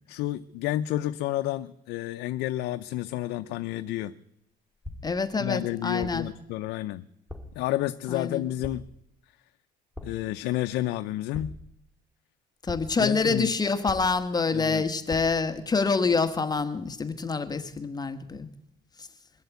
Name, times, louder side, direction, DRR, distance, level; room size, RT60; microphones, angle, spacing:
voice 1, 0.1-4.1 5.4-7.0 7.5-8.8 10.0-11.5 13.0-13.5 14.5-14.9, left 14 dB, 90° left, 10 dB, 0.6 m, -30 dB
sound 1, 4.8-5.3 6.0-6.4 7.3-7.7 8.6-9.1 9.9-10.4 11.3-11.9 12.7-13.1 13.9-14.4 15.1-15.5, left 1 dB, 5° right, 2.4 m, -41 dB
voice 2, 5.0-6.3 8.1-8.4 12.6-18.5 19.0-19.1, left 4 dB, 25° left, 10 dB, 1.4 m, -26 dB
22.0 x 8.0 x 8.3 m, 0.77 s
cardioid pair, 110°, 17 cm